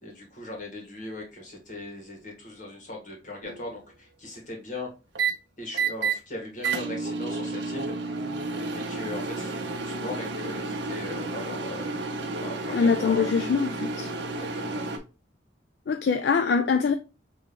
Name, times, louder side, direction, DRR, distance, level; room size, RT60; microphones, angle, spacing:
voice 1, 0.0-4.9 5.6-8.1 8.5-12.0 12.4-13.3 14.2-14.9, left 2 dB, 40° left, 1.6 m, -39 dB
sound 1, 3.4-3.8 5.1-5.3 5.7-6.2 6.6-15.0, right 4 dB, 70° right, 0.8 m, -31 dB
voice 2, 12.7-14.1 15.9-16.9, left 5 dB, 60° left, 0.3 m, -23 dB
5.3 x 3.0 x 2.9 m
head